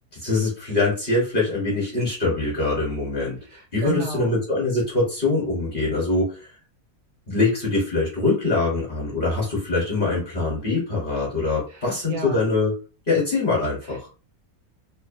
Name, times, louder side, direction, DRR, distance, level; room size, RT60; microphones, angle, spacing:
voice 1, 0.1-3.4 3.7-6.4 7.3-12.7 13.1-14.1, left 3 dB, 40° left, -5 dB, 1.0 m, -23 dB
voice 2, 3.4-4.4 11.7-12.5 13.8-14.1, right 3 dB, 85° right, 0 dB, 1.1 m, -34 dB
2.9 x 2.1 x 2.5 m, 0.35 s
omnidirectional pair, 1.6 m